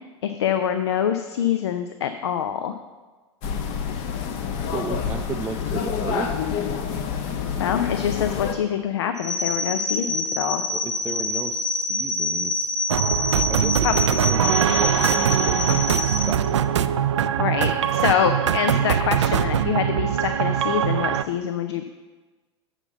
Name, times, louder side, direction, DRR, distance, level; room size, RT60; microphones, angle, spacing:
voice 1, 0.2-2.7 7.6-10.6 13.8-13.9 17.4-21.8, left 9 dB, 65° left, 8 dB, 0.5 m, -25 dB
sound 1, 3.4-8.5, left 7 dB, 45° left, 0.9 m, -28 dB
voice 2, 4.7-6.3 10.7-12.8 13.5-16.8, right 4 dB, 10° right, 1 dB, 0.5 m, -34 dB
sound 2, 9.2-16.3, left 2 dB, 90° left, 1.5 m, -26 dB
sound 3, 12.9-21.2, right 9 dB, 70° right, 0.4 m, -22 dB
7.9 x 5.8 x 7.0 m, 1.3 s
figure-of-eight pair, 90°, 15 cm